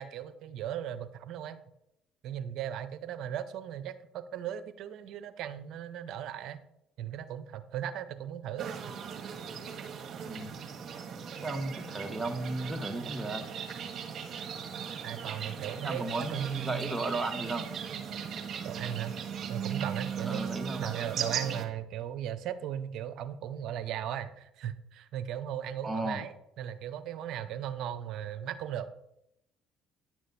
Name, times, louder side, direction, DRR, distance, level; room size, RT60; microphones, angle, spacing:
voice 1, 0.0-1.6 2.2-6.6 7.0-8.7 15.0-17.0 18.6-19.2 19.5-20.5 20.8-28.9, right 10 dB, 65° right, 12 dB, 0.7 m, -37 dB
sound 1, 8.6-21.7, right 7 dB, 50° right, 1.4 m, -38 dB
voice 2, 11.4-13.4 15.8-17.7 20.2-21.1 25.8-26.2, right 2 dB, 15° right, 5 dB, 1.5 m, -35 dB
10.0 x 6.2 x 4.2 m, 0.83 s
hypercardioid pair, 65°, 0 cm